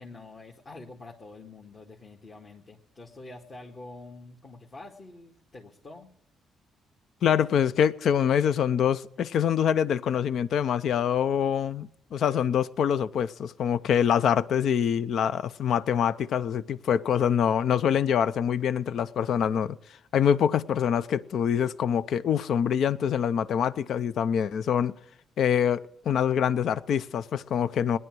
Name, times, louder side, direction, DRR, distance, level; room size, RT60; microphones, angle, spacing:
voice 1, 0.0-6.1, left 2 dB, 40° left, 2.0 m, -46 dB
voice 2, 7.2-19.8 20.1-24.9 25.4-28.0, left 8 dB, 70° left, 0.6 m, -25 dB
18.5 x 11.0 x 6.3 m
cardioid pair, 90°, 0 cm